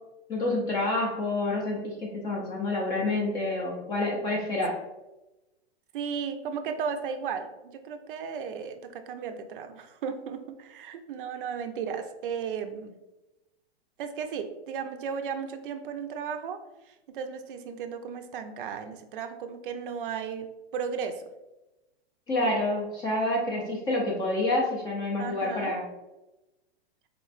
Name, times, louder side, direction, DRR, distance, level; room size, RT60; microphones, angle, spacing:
voice 1, 0.3-4.8 22.3-25.8, left 2 dB, 15° left, -3 dB, 0.4 m, -28 dB
voice 2, 5.9-12.9 14.0-16.6 16.9-21.2 25.2-25.7, right 6 dB, 55° right, 7 dB, 0.5 m, -35 dB
4.4 x 3.0 x 2.4 m, 1.0 s
hypercardioid pair, 150°, 31 cm